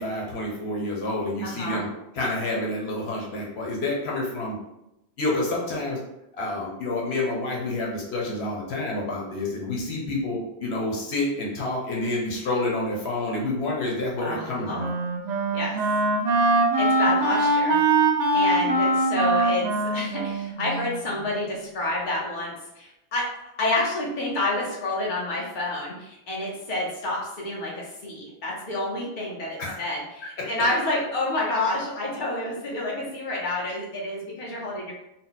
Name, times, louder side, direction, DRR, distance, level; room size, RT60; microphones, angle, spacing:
voice 1, 0.0-1.9 2.1-4.6 5.2-6.0 6.3-14.9 29.6-29.8 30.2-30.5, left 2 dB, 85° left, -2 dB, 1.2 m, -28 dB
voice 2, 1.4-1.8 14.2-14.4 14.6-14.8 15.5-15.8 16.8-17.8 18.3-19.7 19.9-23.2 23.6-34.9, left 2 dB, 50° left, -4 dB, 1.1 m, -29 dB
Wind instrument woodwind instrument, 14.3-21.5, right 2 dB, 50° right, 0.6 m, -23 dB
3.8 x 2.2 x 4.0 m, 0.87 s
omnidirectional pair, 1.1 m